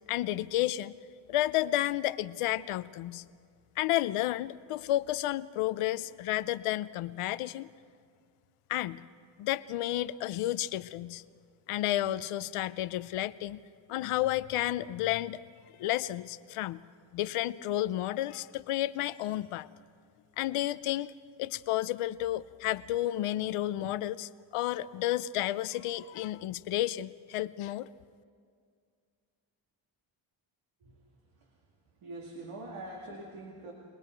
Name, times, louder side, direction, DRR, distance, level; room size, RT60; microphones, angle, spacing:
voice 1, 0.1-1.0 1.3-3.2 3.8-7.7 8.7-9.0 9.4-11.2 11.7-13.6 13.9-15.4 15.8-16.8 17.1-19.7 20.4-21.1 21.4-27.9, left 14 dB, 90° left, 16 dB, 0.7 m, -31 dB
voice 2, 32.0-33.7, right 2 dB, 85° right, -1 dB, 2.5 m, -44 dB
30.0 x 19.5 x 4.6 m, 2.2 s
cardioid pair, 65°, 50 cm